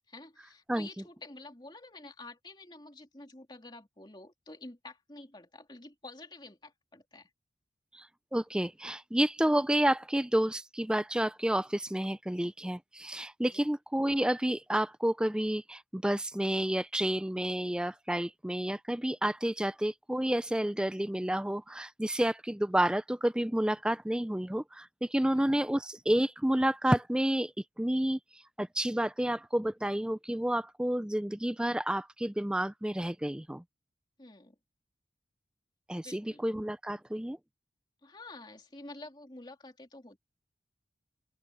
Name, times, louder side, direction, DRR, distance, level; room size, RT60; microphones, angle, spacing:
voice 1, 0.1-7.3 13.5-13.6 25.3-25.5 34.2-34.6 36.0-36.4 38.0-40.2, left 2 dB, 25° left, 3.0 m, -49 dB
voice 2, 8.3-28.2 28.6-33.6 35.9-37.4, right 1 dB, 5° right, 0.4 m, -30 dB
open air
head